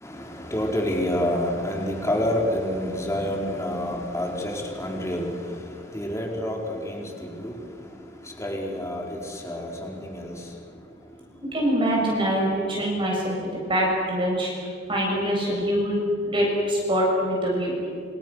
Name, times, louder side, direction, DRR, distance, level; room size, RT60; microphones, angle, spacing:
voice 1, 0.0-7.6 8.2-10.3, left 1 dB, 15° left, 0 dB, 4.6 m, -28 dB
voice 2, 11.5-13.4 13.7-14.5 14.9-17.7, equal, 30° right, -3 dB, 7.6 m, -24 dB
29.5 x 28.0 x 6.6 m, 2.3 s
head